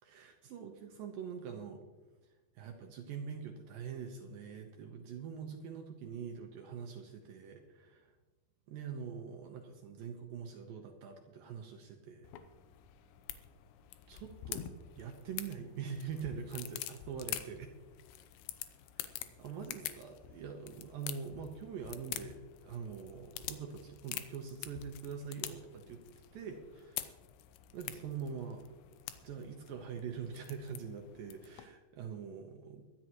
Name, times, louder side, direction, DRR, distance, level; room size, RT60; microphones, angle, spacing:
voice 1, 0.0-1.8 2.6-8.1 8.7-12.3 14.1-14.6 15.0-17.7 19.0-19.1 19.4-26.0 26.3-27.1 27.7-28.6 29.2-32.9, right 6 dB, 70° right, 4 dB, 2.3 m, -44 dB
sound 1, 12.2-31.7, left 13 dB, 85° left, 3.1 m, -46 dB
23.0 x 11.0 x 3.0 m, 1.2 s
omnidirectional pair, 5.0 m